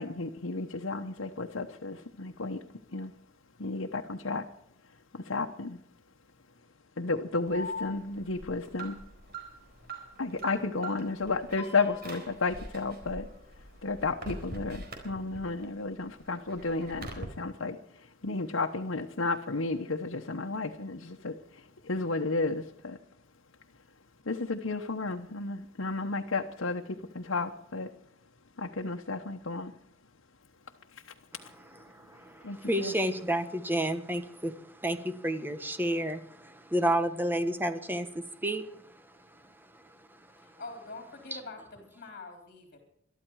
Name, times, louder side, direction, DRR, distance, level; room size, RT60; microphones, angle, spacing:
voice 1, 0.0-2.6 2.9-3.1 3.6-4.4 5.1-5.8 7.0-9.0 10.2-13.3 13.8-17.8 18.2-23.0 24.3-27.9 28.6-29.7 32.4-32.9, left 3 dB, 90° left, 3 dB, 1.2 m, -32 dB
Alarm, 7.5-15.6 16.0-17.2, right 1 dB, 55° right, 4.2 m, -42 dB
voice 2, 31.7-40.5 41.3-41.4, right 1 dB, 10° right, 9 dB, 1.4 m, -32 dB
voice 3, 40.4-42.8, left 3 dB, 50° left, 3 dB, 3.8 m, -45 dB
22.5 x 13.0 x 4.8 m, 0.69 s
head